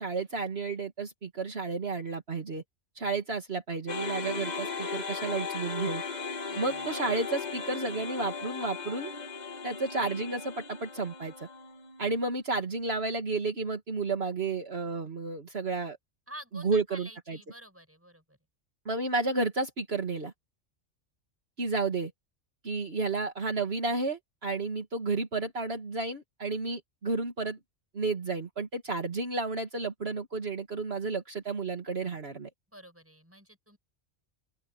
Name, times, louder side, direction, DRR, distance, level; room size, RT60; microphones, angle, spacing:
voice 1, 0.0-2.6 3.0-6.0 6.6-9.1 9.6-11.5 12.0-16.0 16.5-17.4 18.9-20.3 21.6-22.1 22.6-27.6 27.9-32.5, right 3 dB, 55° right, 2.3 m, -32 dB
sound 1, 3.9-12.2, left 5 dB, 35° left, 1.4 m, -37 dB
voice 2, 6.5-6.9 16.3-18.4 32.7-33.8, equal, 10° right, 7.0 m, -49 dB
open air
omnidirectional pair, 1.3 m